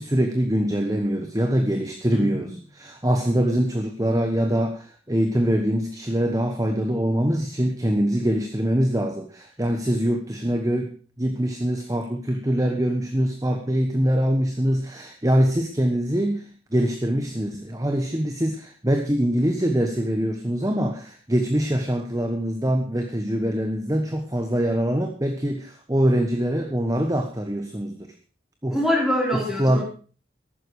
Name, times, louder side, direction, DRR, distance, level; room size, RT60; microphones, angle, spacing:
voice 1, 0.0-28.1 28.6-28.8 29.3-29.8, equal, 20° right, 6 dB, 1.2 m, -24 dB
voice 2, 2.1-2.5 28.7-29.8, left 1 dB, ahead, -1 dB, 4.6 m, -24 dB
14.0 x 12.0 x 4.8 m, 0.38 s
head